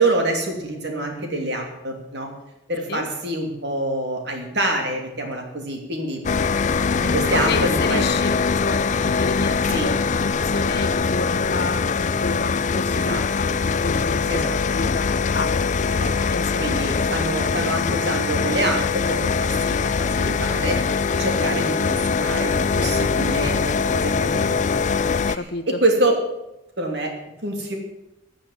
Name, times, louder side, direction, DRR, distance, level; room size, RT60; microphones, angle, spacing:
voice 1, 0.0-2.3 2.7-6.2 7.0-8.0 9.7-9.9 12.9-13.6 14.3-14.6 15.9-16.2 16.6-24.9 25.3-26.2 26.8-27.1 27.4-27.7, right 2 dB, 55° right, 2 dB, 2.9 m, -26 dB
sound 1, 6.2-25.4, left 5 dB, 35° left, 0.4 m, -22 dB
voice 2, 7.0-9.9 10.2-13.5 13.8-14.2 14.7-15.1 15.3-15.5 16.3-16.6 25.3-25.6, left 3 dB, 55° left, 9 dB, 1.1 m, -30 dB
13.5 x 7.2 x 9.4 m, 0.91 s
head